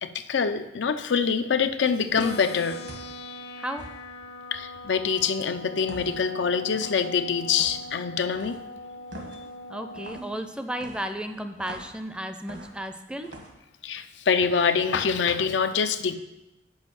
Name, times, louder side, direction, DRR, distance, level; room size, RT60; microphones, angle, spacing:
voice 1, 0.0-2.8 4.5-8.6 13.8-16.1, left 6 dB, 90° left, 9 dB, 0.5 m, -25 dB
sound 1, 2.1-2.4 2.8-3.2 3.8-4.0 5.9-6.2 6.7-7.0 7.5-7.8 8.3-8.6 9.1-9.4 9.9-10.3 10.8-12.0 12.5-12.9 13.2-13.5, right 1 dB, 80° right, 1.5 m, -43 dB
sound 2, 2.2-10.2, left 2 dB, 75° left, 1.0 m, -40 dB
voice 2, 9.7-13.3, right 1 dB, 5° right, 8 dB, 0.5 m, -34 dB
6.3 x 5.3 x 6.9 m, 0.95 s
head